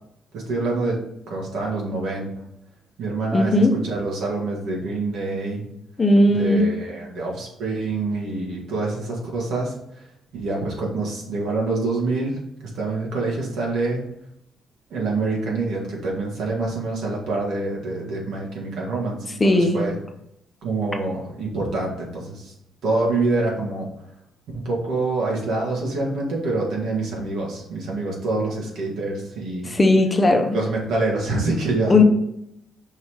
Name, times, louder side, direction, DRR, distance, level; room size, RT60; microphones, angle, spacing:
voice 1, 0.3-1.0 1.3-2.3 3.0-5.6 6.3-10.1 10.3-12.4 12.7-14.0 14.9-20.0 20.6-22.5 22.8-23.9 24.5-29.7 30.5-32.0, right 3 dB, 75° right, -3 dB, 1.9 m, -26 dB
voice 2, 3.3-3.8 6.0-6.7 19.4-19.9 29.7-30.6 31.9-32.0, left 2 dB, 25° left, 4 dB, 0.8 m, -17 dB
5.6 x 3.3 x 5.6 m, 0.80 s
cardioid pair, 90°, 0 cm